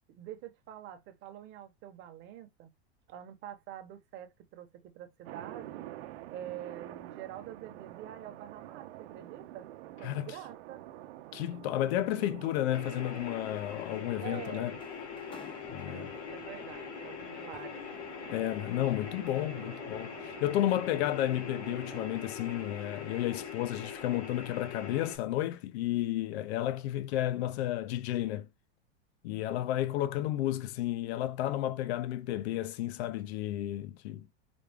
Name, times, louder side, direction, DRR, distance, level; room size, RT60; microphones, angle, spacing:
voice 1, 0.1-2.7 3.1-5.9 6.3-9.7 10.0-10.8 14.2-14.9 15.9-17.9 22.6-22.8, right 11 dB, 30° right, 0.9 m, -46 dB
sound 1, 5.2-23.4, right 14 dB, 70° right, 0.8 m, -49 dB
voice 2, 10.0-10.3 11.3-14.7 15.7-16.1 18.3-28.5 29.2-34.3, left 13 dB, 70° left, 0.6 m, -32 dB
sound 2, 12.7-25.2, left 6 dB, 90° left, 1.9 m, -42 dB
sound 3, 13.7-16.6 17.7-19.7 20.1-20.4 20.8-21.0, left 4 dB, 15° left, 0.6 m, -56 dB
5.1 x 2.3 x 3.4 m
supercardioid pair, 150°, 33 cm